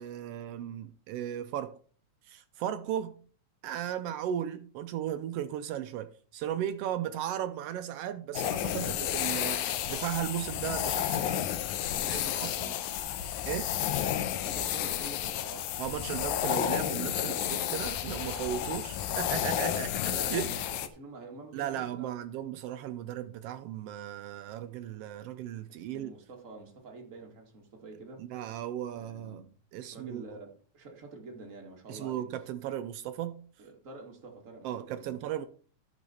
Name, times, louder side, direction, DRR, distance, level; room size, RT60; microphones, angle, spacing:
voice 1, 0.0-1.8 2.3-3.2 3.6-11.5 12.1-12.6 13.5-13.8 15.8-20.5 21.5-26.1 28.2-29.4 29.7-30.2 31.9-33.4 34.6-35.4, right 10 dB, 80° right, 1.3 m, -36 dB
sound 1, 8.3-20.9, left 11 dB, 85° left, 2.1 m, -31 dB
voice 2, 11.9-12.9 14.3-15.8 20.0-22.4 25.7-28.3 28.9-29.5 29.9-32.3 33.6-35.2, right 3 dB, 30° right, 1.8 m, -47 dB
11.5 x 6.5 x 4.2 m
omnidirectional pair, 3.4 m